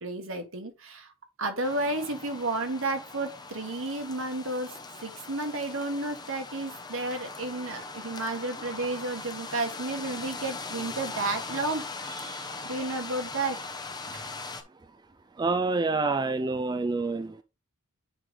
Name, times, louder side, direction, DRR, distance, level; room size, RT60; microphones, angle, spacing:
voice 1, 0.0-1.1 1.4-13.6 14.1-14.3, right 2 dB, 65° right, 1.7 m, -32 dB
sound 1, 1.6-14.6, left 3 dB, 20° left, 0.8 m, -40 dB
voice 2, 15.4-17.4, right 3 dB, 20° right, 0.4 m, -27 dB
8.8 x 3.3 x 3.8 m
head